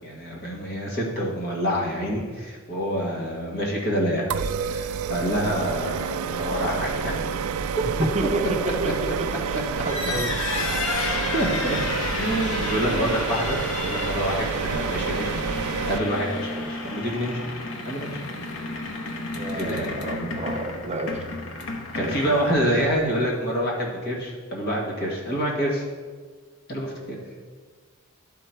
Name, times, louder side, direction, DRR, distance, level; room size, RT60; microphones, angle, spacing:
voice 1, 0.0-4.3 4.6-7.1 8.8-8.9 11.3-11.8 12.2-15.3 15.9-17.4 17.8-18.2 19.6-20.2 21.9-25.9 26.7-27.2, equal, 50° left, -2 dB, 1.7 m, -27 dB
sound 1, 4.3-16.0, right 6 dB, 90° right, 0.4 m, -29 dB
voice 2, 8.0-10.3 19.3-21.4 21.9-22.5, right 2 dB, 30° right, 3 dB, 0.6 m, -30 dB
sound 2, 9.7-23.1, left 3 dB, 85° left, 1.0 m, -32 dB
11.5 x 3.9 x 4.5 m, 1.5 s
head